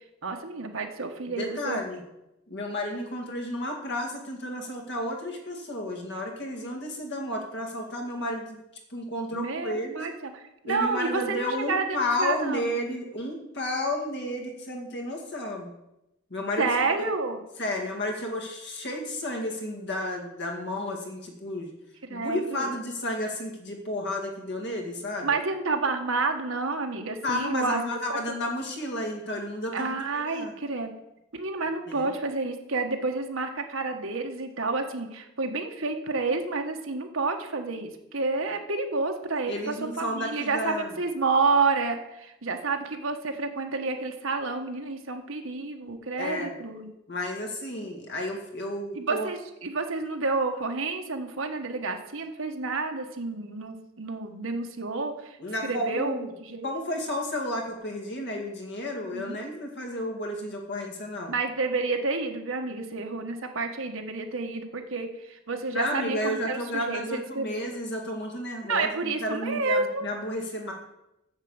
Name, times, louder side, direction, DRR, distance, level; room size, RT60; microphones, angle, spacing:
voice 1, 0.2-1.8 9.3-10.3 10.6-12.6 16.6-17.4 22.1-22.7 25.2-28.2 29.7-30.9 31.3-46.9 48.9-55.4 55.6-56.7 59.1-59.4 61.3-67.0 67.3-67.6 68.7-70.0, right 3 dB, 65° right, 5 dB, 1.3 m, -29 dB
voice 2, 1.3-2.0 2.5-8.6 8.9-10.1 10.6-15.7 16.3-16.9 17.6-21.7 22.1-25.4 27.2-29.9 30.1-30.5 31.9-32.1 39.5-40.9 46.2-46.5 47.1-49.3 55.4-56.3 56.6-61.3 65.7-70.7, left 1 dB, 55° left, 1 dB, 2.1 m, -32 dB
7.4 x 7.3 x 8.0 m, 0.91 s
head